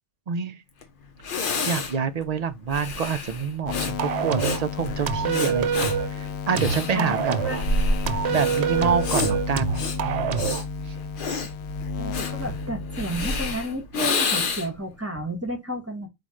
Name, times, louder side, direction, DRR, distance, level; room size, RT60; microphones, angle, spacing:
voice 1, 0.3-0.6 1.7-7.4 8.3-10.5, right 6 dB, 55° right, 0.4 m, -27 dB
Breathing, 0.8-0.9 1.2-14.9, left 3 dB, 55° left, 0.9 m, -29 dB
sound 1, 3.7-13.6, left 5 dB, 80° left, 0.9 m, -33 dB
sound 2, 4.0-4.6 5.1-6.1 6.6-7.7 8.1-10.7, right 7 dB, 85° right, 0.9 m, -26 dB
voice 2, 6.9-8.0 8.2-8.4 12.0-16.1, right 1 dB, 15° right, 1.0 m, -32 dB
4.2 x 2.5 x 4.8 m
omnidirectional pair, 1.1 m